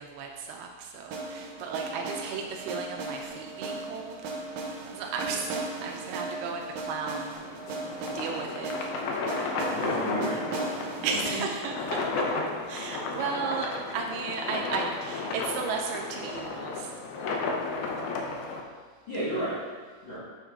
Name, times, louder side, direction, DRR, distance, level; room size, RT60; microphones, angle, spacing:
voice 1, 0.0-4.2 4.9-7.4 7.8-8.7 11.0-12.0 12.7-16.9, right 5 dB, 90° right, 2 dB, 2.5 m, -34 dB
sound 1, 1.1-13.0, right 3 dB, 70° right, 2.3 m, -38 dB
sound 2, 7.4-18.6, left 3 dB, 80° left, 2.6 m, -33 dB
voice 2, 9.7-10.5 11.0-11.4 19.1-19.6 20.0-20.2, right 1 dB, 50° left, -11 dB, 1.5 m, -32 dB
6.9 x 5.5 x 3.6 m, 1.5 s
omnidirectional pair, 4.3 m